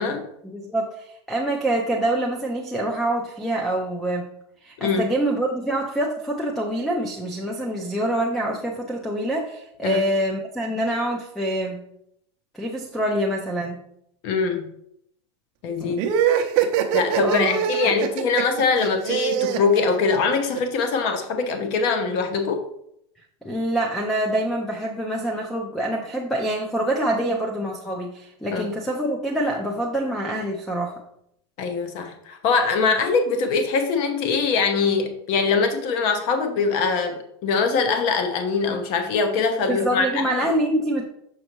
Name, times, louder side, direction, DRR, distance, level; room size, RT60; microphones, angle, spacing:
voice 1, 0.4-4.3 4.6-11.8 12.5-13.8 15.8-16.0 17.2-17.9 23.4-31.0 39.7-41.1, right 1 dB, ahead, 1 dB, 0.4 m, -26 dB
voice 2, 14.2-14.7 15.6-16.1 16.9-22.6 28.5-28.7 31.6-40.4, left 4 dB, 40° left, 6 dB, 0.8 m, -23 dB
sound 1, 16.0-20.6, right 8 dB, 35° right, 0.7 m, -23 dB
6.5 x 6.2 x 3.0 m, 0.74 s
supercardioid pair, 175°, 15 cm